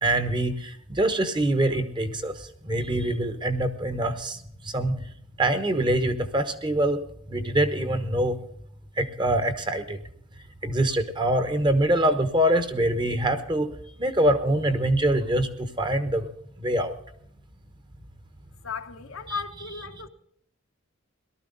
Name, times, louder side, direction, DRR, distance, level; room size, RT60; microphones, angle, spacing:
voice 1, 0.0-4.9 5.4-7.0 7.3-8.4 9.0-10.0 10.6-13.7 14.0-16.3 16.6-16.9 19.3-19.4, right 1 dB, 20° right, 1.0 m, -24 dB
voice 2, 18.6-20.1, left 5 dB, 75° left, 1.0 m, -35 dB
18.0 x 12.5 x 3.9 m
head